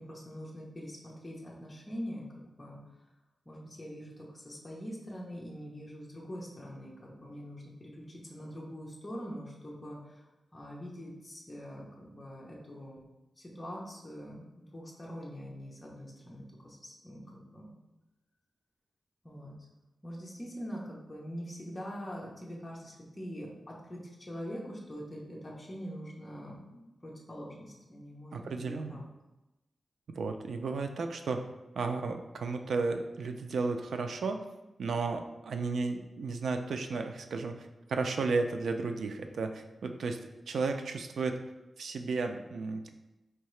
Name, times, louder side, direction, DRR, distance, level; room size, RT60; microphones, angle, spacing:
voice 1, 0.0-2.8 3.5-13.0 13.4-17.7 19.2-19.5 20.0-29.0, equal, 15° left, -4 dB, 0.7 m, -44 dB
voice 2, 28.3-29.0 30.1-31.4 31.8-34.4 34.8-40.2 40.5-41.4 41.8-42.9, right 4 dB, 80° right, 5 dB, 0.3 m, -33 dB
4.5 x 2.8 x 3.1 m, 1.0 s
wide cardioid pair, 160°, 0 cm